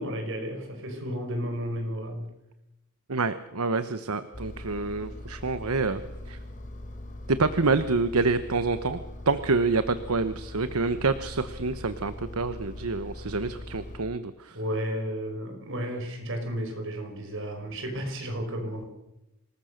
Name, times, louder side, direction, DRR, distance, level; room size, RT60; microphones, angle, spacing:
voice 1, 0.0-2.3 14.5-18.9, equal, 60° right, 4 dB, 5.6 m, -33 dB
voice 2, 3.1-6.0 6.3-6.4 7.3-14.6, right 3 dB, 75° right, 11 dB, 1.1 m, -27 dB
Engine, 4.3-14.0, left 1 dB, 35° left, 3.5 m, -41 dB
26.0 x 20.0 x 6.6 m, 0.93 s
head